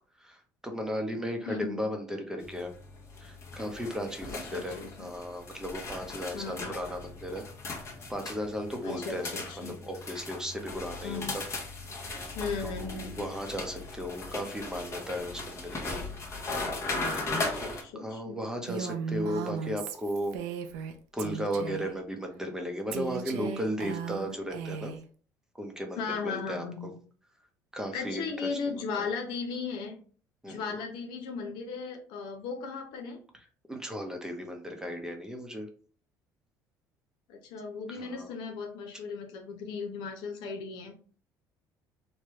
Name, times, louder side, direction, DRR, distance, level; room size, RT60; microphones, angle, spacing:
voice 1, 0.2-2.7 3.2-7.4 7.7-9.3 9.6-11.4 12.6-16.0 17.2-20.4 21.1-24.9 25.6-26.9 27.7-28.5 28.7-29.1 30.4-30.8 33.7-35.7 37.9-38.3, equal, 10° right, 3 dB, 0.7 m, -36 dB
voice 2, 1.5-1.8 4.3-5.1 6.3-6.8 8.8-9.8 11.0-11.4 12.3-13.3 17.4-18.4 26.0-26.9 27.9-29.9 30.5-33.2 37.3-40.9, left 5 dB, 80° left, 3 dB, 0.7 m, -36 dB
sound 1, 2.4-17.8, left 2 dB, 35° left, 1.0 m, -38 dB
Female speech woman speaking, 18.7-20.9 21.2-21.9 22.9-25.0, right 7 dB, 90° right, 0.4 m, -36 dB
3.0 x 2.2 x 3.0 m, 0.42 s
supercardioid pair, 80°, 8 cm